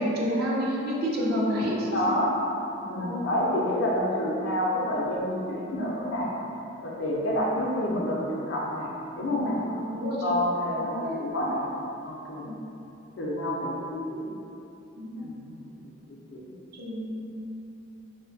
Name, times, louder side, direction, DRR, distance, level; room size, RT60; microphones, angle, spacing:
voice 1, 0.0-2.1 2.9-3.2 9.7-10.3 10.8-11.1 12.4-12.6 15.0-15.3 16.8-17.5, equal, 50° right, -4 dB, 0.4 m, -29 dB
voice 2, 1.9-2.4 2.8-6.3 6.8-9.6 10.2-11.7 12.0-12.4 13.2-14.3 15.2-15.6 16.1-16.4, left 1 dB, 60° left, -4 dB, 0.4 m, -28 dB
2.5 x 2.1 x 2.6 m, 2.9 s
head